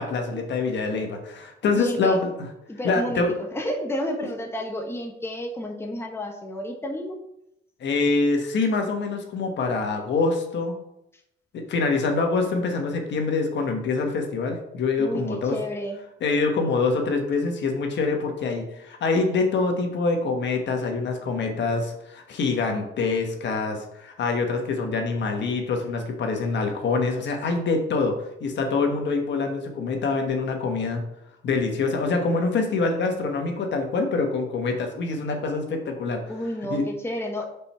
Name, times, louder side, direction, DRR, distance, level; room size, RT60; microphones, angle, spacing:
voice 1, 0.0-2.3 2.8-3.3 7.8-10.7 11.5-15.6 16.2-28.1 28.4-31.0 31.4-36.2 36.7-36.8, left 3 dB, 65° left, 3 dB, 1.3 m, -25 dB
voice 2, 1.7-2.2 2.7-7.2 15.0-16.0 36.3-37.5, equal, 10° left, 2 dB, 1.2 m, -31 dB
5.3 x 4.4 x 5.5 m, 0.80 s
cardioid pair, 90°, 20 cm